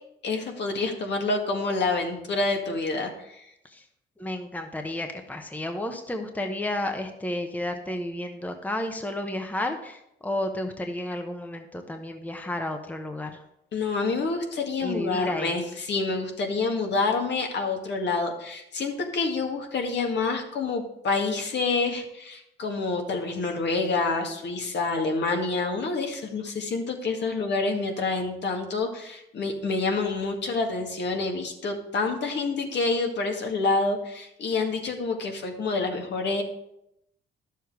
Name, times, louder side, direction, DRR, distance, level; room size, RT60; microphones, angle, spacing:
voice 1, 0.2-3.5 13.7-36.4, left 3 dB, 60° left, 3 dB, 1.9 m, -27 dB
voice 2, 4.2-13.4 14.8-15.6, left 1 dB, 10° left, 5 dB, 1.0 m, -32 dB
11.0 x 7.0 x 4.8 m, 0.81 s
cardioid pair, 90°, 20 cm